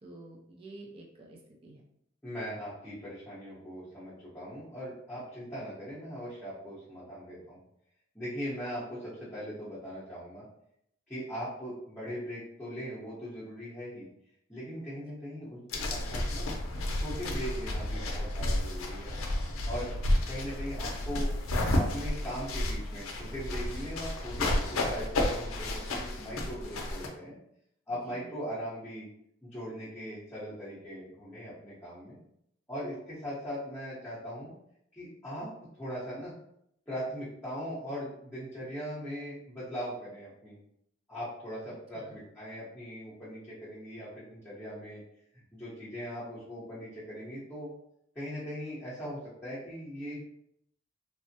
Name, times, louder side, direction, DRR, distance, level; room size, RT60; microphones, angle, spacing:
voice 1, 0.0-1.8 15.0-15.1 27.9-28.3 41.9-42.2, right 2 dB, 30° right, -1 dB, 0.4 m, -50 dB
voice 2, 2.2-7.6 8.1-10.5 11.1-14.1 14.5-16.5 17.0-19.1 19.6-19.9 20.3-21.3 21.8-27.3 27.9-29.1 29.4-32.2 32.7-34.5 35.0-36.3 36.9-40.6 41.1-45.0 45.3-47.7 48.1-50.2, equal, 10° left, -11 dB, 0.8 m, -40 dB
sound 1, 15.7-27.1, left 1 dB, 80° left, 0.5 m, -31 dB
3.3 x 2.1 x 2.6 m, 0.75 s
head